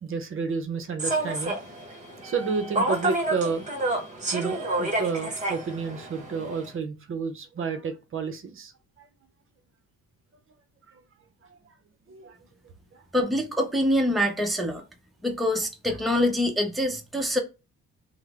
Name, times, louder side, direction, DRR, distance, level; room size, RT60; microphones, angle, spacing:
voice 1, 0.0-1.6 2.2-3.6 4.3-8.7 9.0-9.1 10.9-11.0 11.5-11.6 12.1-12.4 12.9-13.0, right 5 dB, 45° right, 0.6 m, -31 dB
Human voice / Subway metro underground, 1.0-6.7, right 2 dB, 25° right, 1.0 m, -29 dB
voice 2, 13.1-14.8 15.2-17.4, left 1 dB, ahead, 0.6 m, -25 dB
3.1 x 2.0 x 3.4 m
cardioid pair, 90°, 30 cm